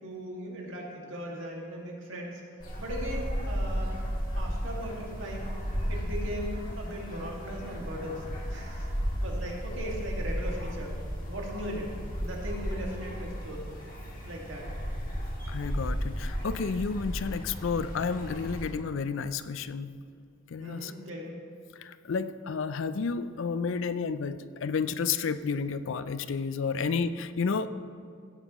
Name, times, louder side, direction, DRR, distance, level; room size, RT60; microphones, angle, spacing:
voice 1, 0.0-2.4 2.8-4.0 4.3-5.5 5.9-8.9 9.2-10.9 11.3-11.9 12.2-13.6 14.2-14.7 20.6-21.4, equal, 65° right, -1 dB, 2.1 m, -38 dB
sound 1, 2.6-18.7, equal, 40° left, 1.9 m, -34 dB
voice 2, 15.5-19.9 20.5-20.9 21.7-27.7, left 5 dB, 65° left, 13 dB, 0.4 m, -31 dB
16.5 x 8.9 x 3.0 m, 2.3 s
head